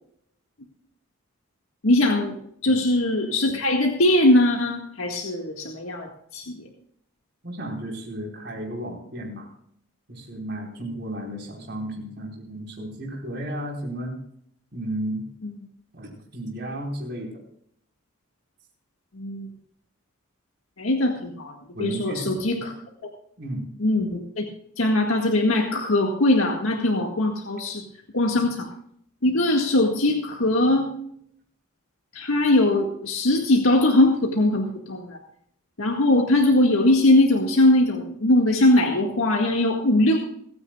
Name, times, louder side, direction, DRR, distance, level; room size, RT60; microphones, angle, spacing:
voice 1, 1.8-2.4 2.6-6.6 19.1-19.5 20.8-22.7 23.8-24.5 24.8-27.8 28.1-28.7 29.2-30.9 32.1-35.2 35.8-40.2, left 1 dB, 90° left, 1 dB, 1.9 m, -21 dB
voice 2, 7.4-9.5 10.1-14.2 14.7-15.2 15.9-17.3 21.7-22.7 23.4-23.7, right 1 dB, 55° right, -1 dB, 4.7 m, -33 dB
29.0 x 9.8 x 2.4 m, 0.69 s
head